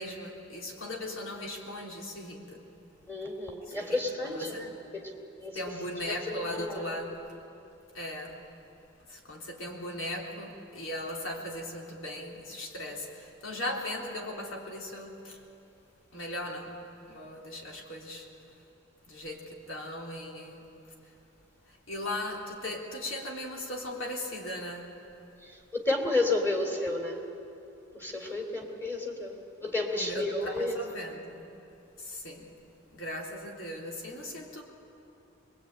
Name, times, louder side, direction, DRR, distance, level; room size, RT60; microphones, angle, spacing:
voice 1, 0.0-2.6 3.6-4.0 4.2-4.6 5.6-7.2 7.9-8.4 9.1-15.4 16.1-18.3 19.1-20.7 21.7-24.9 30.0-31.6 32.0-32.5 32.9-34.6, left 1 dB, 70° left, 0 dB, 3.6 m, -38 dB
voice 2, 3.1-4.7 4.9-5.6 6.1-7.0 25.4-27.2 27.9-30.8, left 2 dB, 10° left, 2 dB, 3.0 m, -32 dB
23.5 x 22.0 x 9.0 m, 2.8 s
head